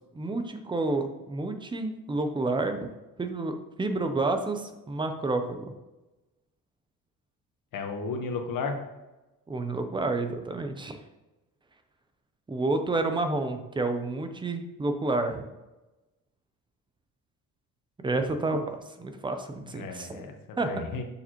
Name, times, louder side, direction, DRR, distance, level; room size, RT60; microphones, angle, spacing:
voice 1, 0.1-2.9 3.2-5.7 9.5-11.0 12.5-15.4 18.0-20.2 20.6-20.8, right 2 dB, 15° right, 7 dB, 0.5 m, -29 dB
voice 2, 7.7-8.8 19.7-21.0, left 4 dB, 60° left, 4 dB, 1.2 m, -34 dB
7.0 x 6.5 x 3.0 m, 1.1 s
cardioid pair, 170°, 37 cm